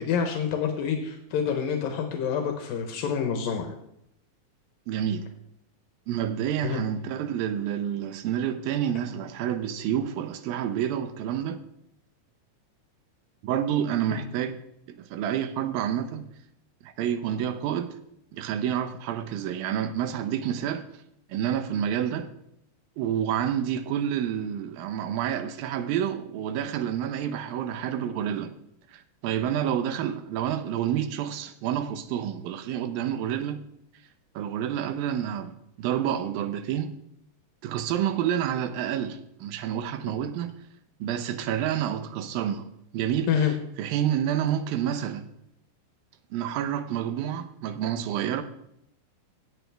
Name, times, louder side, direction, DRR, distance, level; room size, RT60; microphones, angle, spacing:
voice 1, 0.0-3.7 6.6-6.9 14.1-14.2 43.3-43.5, left 7 dB, 80° left, 2.8 m, -27 dB
voice 2, 4.9-5.3 6.1-11.6 13.4-14.6 15.0-16.3 16.8-18.0 18.3-20.8 21.3-22.3 23.0-28.5 28.9-33.6 34.4-36.9 37.6-40.6 41.0-42.7 42.9-43.5 43.8-45.3 46.3-48.4, right 9 dB, 85° right, 2.6 m, -29 dB
16.5 x 8.3 x 3.4 m
omnidirectional pair, 4.0 m